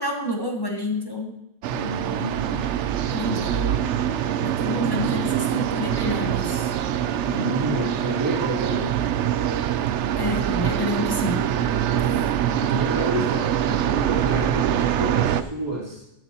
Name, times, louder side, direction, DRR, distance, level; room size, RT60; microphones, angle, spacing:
voice 1, 0.0-1.4 3.1-4.0 4.4-6.7 10.2-11.5, left 1 dB, 20° left, 0 dB, 1.1 m, -29 dB
sound 1, 1.6-15.4, right 10 dB, 75° right, 0.9 m, -24 dB
voice 2, 1.7-2.6 3.1-3.5 7.2-8.9 12.3-16.0, right 1 dB, 20° right, -6 dB, 3.2 m, -30 dB
13.0 x 12.0 x 2.9 m, 0.89 s
omnidirectional pair, 1.2 m